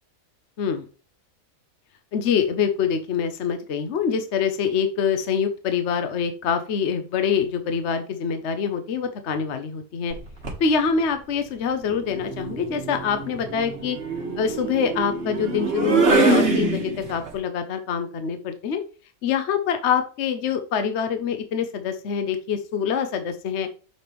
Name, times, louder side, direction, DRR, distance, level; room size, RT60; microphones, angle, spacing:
voice 1, 2.1-10.1 10.6-14.0 14.4-18.8 19.2-23.7, left 6 dB, 60° left, 7 dB, 0.9 m, -25 dB
sound 1, 10.1-10.7 12.0-17.3, right 3 dB, 45° right, 1.5 m, -24 dB
6.7 x 5.1 x 3.1 m, 0.35 s
omnidirectional pair, 1.5 m